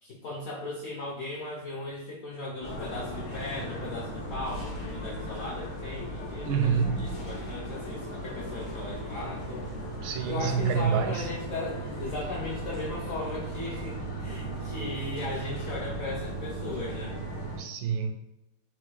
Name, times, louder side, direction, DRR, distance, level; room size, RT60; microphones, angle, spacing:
voice 1, 0.0-9.6 10.3-17.2, left 2 dB, 70° left, -4 dB, 0.7 m, -37 dB
sound 1, 2.6-17.6, right 1 dB, 85° left, 1.9 m, -37 dB
voice 2, 6.4-7.2 10.0-11.3 17.6-18.1, right 6 dB, 80° right, 6 dB, 1.3 m, -27 dB
4.5 x 2.2 x 4.4 m, 0.95 s
omnidirectional pair, 2.2 m